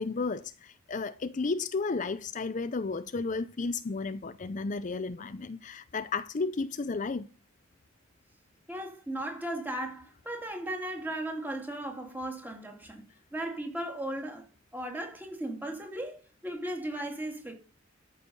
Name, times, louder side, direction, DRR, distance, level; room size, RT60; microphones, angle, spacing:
voice 1, 0.0-7.3, left 4 dB, 40° left, 0.5 m, -33 dB
voice 2, 8.7-14.5 14.7-17.5, right 1 dB, 10° right, 2.7 m, -36 dB
13.5 x 6.3 x 5.4 m
head